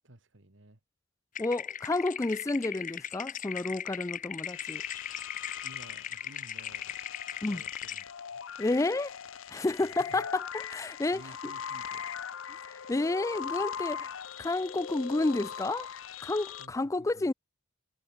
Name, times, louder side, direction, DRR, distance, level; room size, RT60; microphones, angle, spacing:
voice 1, 0.0-0.8 5.6-7.0 7.3-8.0 8.3-8.4 10.0-10.3 11.1-12.0 16.6-17.3, right 1 dB, 65° right, 2.3 m, -54 dB
sound 1, 1.3-8.0, left 9 dB, 40° left, 1.3 m, -39 dB
voice 2, 1.4-4.8 7.4-7.6 8.6-9.1 9.5-11.2 12.9-14.1 14.4-15.9 16.2-17.3, left 2 dB, 15° left, 0.3 m, -30 dB
sound 2, 4.4-16.7, left 7 dB, 85° left, 0.7 m, -41 dB
head